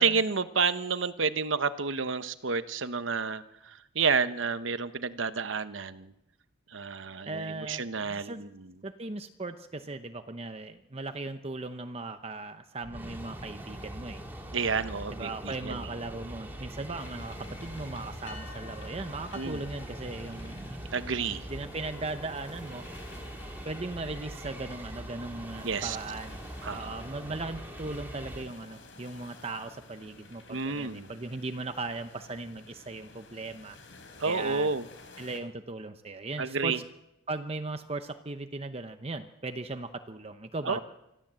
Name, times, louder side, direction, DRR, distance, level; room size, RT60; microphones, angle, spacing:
voice 1, 0.0-6.1 6.7-8.7 14.5-15.9 19.3-19.6 20.9-21.4 25.6-26.0 26.6-27.0 30.5-31.1 34.2-34.9 36.4-36.8 40.6-40.8, right 5 dB, 80° right, 12 dB, 1.0 m, -30 dB
voice 2, 7.2-8.4 8.8-14.2 15.1-20.8 21.5-22.9 23.6-26.4 26.7-33.8 34.2-34.7 35.2-36.8 37.3-40.8, right 3 dB, 30° right, 8 dB, 0.8 m, -38 dB
sound 1, 12.8-28.4, right 1 dB, 10° right, 3.0 m, -42 dB
sound 2, 17.0-35.4, left 3 dB, 80° left, 4.1 m, -52 dB
25.5 x 15.0 x 7.6 m, 0.90 s
head